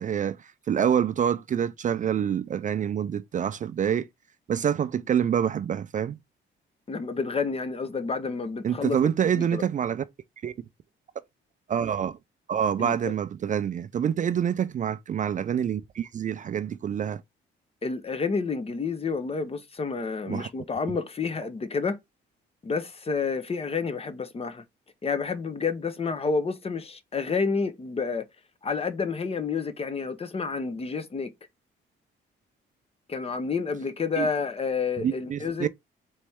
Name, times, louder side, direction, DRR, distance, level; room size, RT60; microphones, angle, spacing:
voice 1, 0.0-4.1 4.5-6.2 8.6-10.0 10.4-10.5 11.7-12.2 12.5-17.2 20.3-20.5 34.2-34.3 35.0-35.7, right 8 dB, 40° right, 0.4 m, -26 dB
voice 2, 6.9-9.6 12.8-13.1 17.8-22.0 22.6-24.6 25.0-28.2 28.6-31.3 33.1-35.7, left 4 dB, 30° left, 0.7 m, -29 dB
4.2 x 3.1 x 3.4 m
cardioid pair, 90°, 20 cm